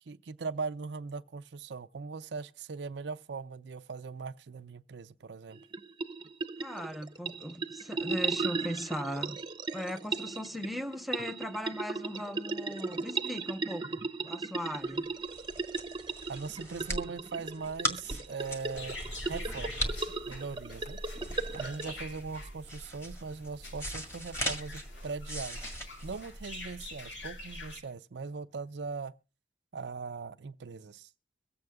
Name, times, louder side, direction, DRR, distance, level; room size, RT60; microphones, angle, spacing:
voice 1, 0.1-5.6 16.3-21.0 21.5-25.6 26.0-29.1 29.7-31.1, right 4 dB, 70° right, 0.5 m, -40 dB
sound 1, 5.5-21.8, right 3 dB, 25° right, 0.8 m, -36 dB
voice 2, 6.6-9.4 9.7-15.1, equal, ahead, 0.6 m, -38 dB
sound 2, 14.9-26.9, equal, 15° left, 1.8 m, -39 dB
sound 3, 18.7-27.8, left 1 dB, 85° left, 2.3 m, -44 dB
23.5 x 7.8 x 3.5 m
head